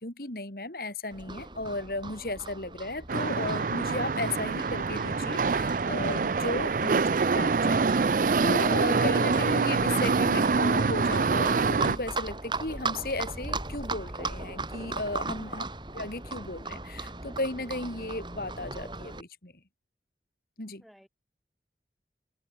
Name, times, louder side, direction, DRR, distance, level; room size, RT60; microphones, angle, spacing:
voice 1, 0.0-15.6 15.9-19.5 20.6-20.8, left 2 dB, 55° left, 3.1 m, -35 dB
Livestock farm animals working animals, 1.1-19.2, right 3 dB, 25° right, 3.4 m, -38 dB
sound 1, 3.1-12.0, right 4 dB, 50° right, 0.5 m, -25 dB
voice 2, 15.5-15.7 20.8-21.1, equal, ahead, 7.4 m, -55 dB
open air
head